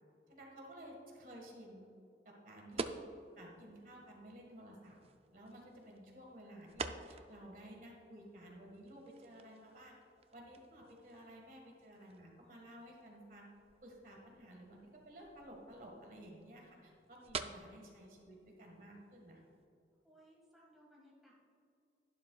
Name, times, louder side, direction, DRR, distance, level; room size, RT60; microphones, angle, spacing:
voice 1, 0.3-1.9 2.3-3.0 3.4-5.0 5.3-9.9 10.3-13.5 13.8-19.4, right 1 dB, 50° right, 0 dB, 1.7 m, -54 dB
sound 1, 2.7-19.7, right 4 dB, 35° right, 0.4 m, -50 dB
voice 2, 20.0-21.3, equal, ahead, -5 dB, 1.8 m, -63 dB
11.5 x 11.0 x 2.4 m, 2.6 s
head